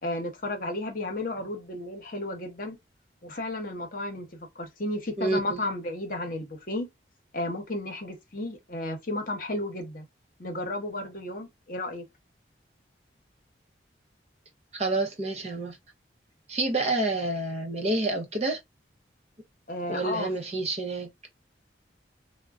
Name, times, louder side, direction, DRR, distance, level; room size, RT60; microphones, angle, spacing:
voice 1, 0.0-2.8 3.2-6.9 7.3-10.0 10.4-12.0 19.7-20.3, left 1 dB, 50° left, 0.9 m, -33 dB
voice 2, 5.2-5.6 14.7-15.8 16.5-18.6 19.9-21.3, right 2 dB, 35° right, 0.7 m, -28 dB
3.6 x 2.1 x 2.4 m
head